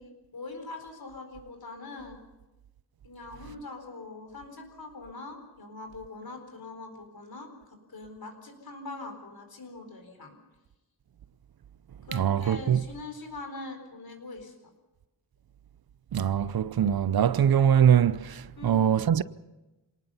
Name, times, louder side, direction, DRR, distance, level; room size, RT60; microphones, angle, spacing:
voice 1, 0.0-2.2 3.0-10.3 12.1-14.5 18.6-18.8, left 3 dB, 65° left, 4.4 m, -42 dB
voice 2, 12.1-12.8 16.1-19.2, right 9 dB, 65° right, 0.6 m, -23 dB
26.5 x 19.0 x 5.6 m
wide cardioid pair, 85°, 39 cm